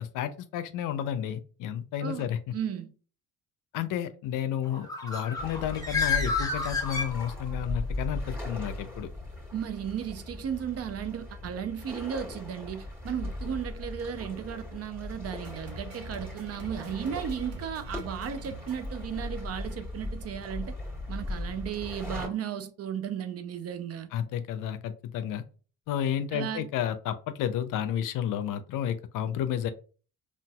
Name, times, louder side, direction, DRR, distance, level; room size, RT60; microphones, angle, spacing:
voice 1, 0.0-2.5 3.7-9.1 24.1-25.4 25.9-29.7, left 10 dB, 70° left, 0.5 m, -31 dB
voice 2, 2.0-2.9 9.5-20.8 21.1-24.1 26.3-26.7, right 8 dB, 45° right, 0.5 m, -35 dB
Bird, 4.6-7.7, left 5 dB, 10° left, 1.0 m, -31 dB
sound 1, 5.4-22.3, left 1 dB, 5° right, 1.4 m, -38 dB
sound 2, 15.4-19.9, right 3 dB, 75° right, 0.9 m, -47 dB
3.9 x 2.4 x 2.2 m
supercardioid pair, 70°, 33 cm